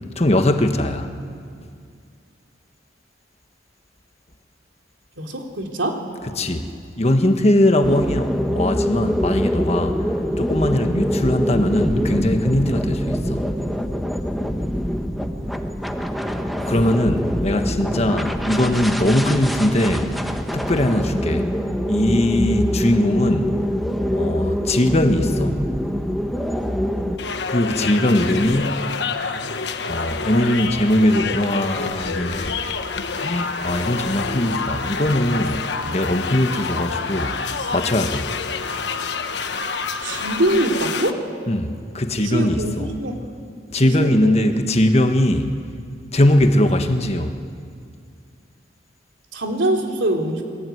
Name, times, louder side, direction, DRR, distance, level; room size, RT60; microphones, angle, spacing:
voice 1, 0.2-1.1 6.4-6.7 7.0-10.0 10.4-13.5 16.7-20.1 20.5-21.5 21.9-23.6 24.1-25.6 27.5-28.8 29.9-32.6 33.2-37.3 37.7-38.3 41.5-42.9 43.7-45.6 46.1-47.4, left 1 dB, 35° left, 7 dB, 1.5 m, -20 dB
voice 2, 5.2-6.0 17.8-18.3 40.0-41.2 42.2-43.3 43.8-44.4 49.3-50.4, right 1 dB, 80° right, 3 dB, 3.5 m, -24 dB
sound 1, 7.8-27.2, equal, ahead, 1.3 m, -24 dB
sound 2, 27.2-41.1, left 5 dB, 65° left, 1.3 m, -27 dB
28.5 x 21.5 x 9.5 m, 2.3 s
head